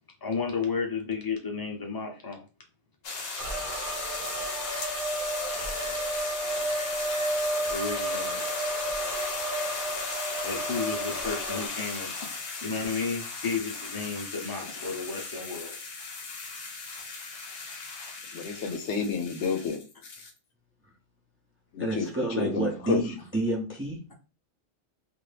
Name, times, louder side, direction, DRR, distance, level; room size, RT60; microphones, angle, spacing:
voice 1, 0.2-2.5 7.7-8.4 10.4-15.7, left 4 dB, 20° left, 0 dB, 0.7 m, -33 dB
sound 1, 3.0-20.3, left 4 dB, 65° left, 0.9 m, -36 dB
sound 2, 3.4-11.7, right 2 dB, 55° right, 0.8 m, -32 dB
voice 2, 18.3-19.8 21.7-23.1, left 5 dB, 85° left, 6 dB, 0.9 m, -30 dB
voice 3, 21.8-24.0, right 1 dB, 15° right, 0 dB, 0.4 m, -29 dB
2.7 x 2.5 x 3.3 m, 0.33 s
omnidirectional pair, 1.2 m